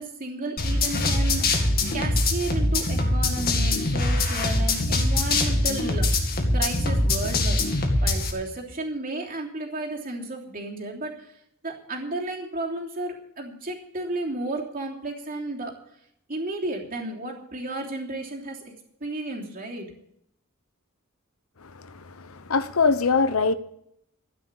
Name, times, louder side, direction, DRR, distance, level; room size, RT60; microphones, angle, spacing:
voice 1, 0.0-7.6 8.0-11.4 11.6-15.8 16.3-18.7 19.0-19.9, right 2 dB, 45° right, 3.2 m, -33 dB
sound 1, 0.6-8.3, left 2 dB, 45° left, 2.1 m, -23 dB
voice 2, 21.6-23.5, left 4 dB, 85° left, 0.9 m, -23 dB
13.5 x 9.9 x 6.9 m
head